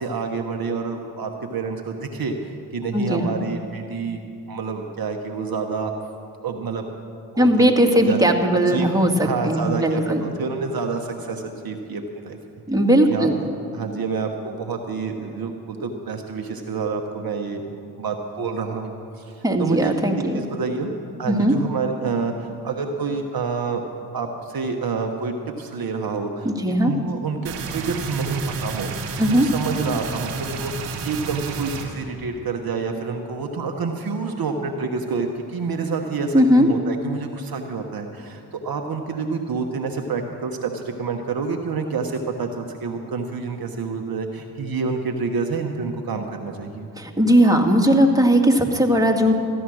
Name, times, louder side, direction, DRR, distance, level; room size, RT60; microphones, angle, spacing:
voice 1, 0.0-4.2 4.5-5.9 6.4-6.8 7.3-8.2 8.5-8.9 9.2-12.4 13.1-13.3 13.7-17.6 18.0-20.9 21.2-23.8 24.1-46.9, right 4 dB, 50° right, 3 dB, 1.2 m, -28 dB
voice 2, 2.9-3.4 7.4-10.2 12.7-13.4 19.4-20.4 21.3-21.5 26.5-26.9 29.2-29.5 36.3-36.7 47.0-49.3, equal, 5° right, 1 dB, 1.8 m, -18 dB
sound 1, 27.5-31.9, right 5 dB, 90° right, 1.5 m, -31 dB
14.5 x 10.0 x 6.3 m, 2.6 s
hypercardioid pair, 40°, 47 cm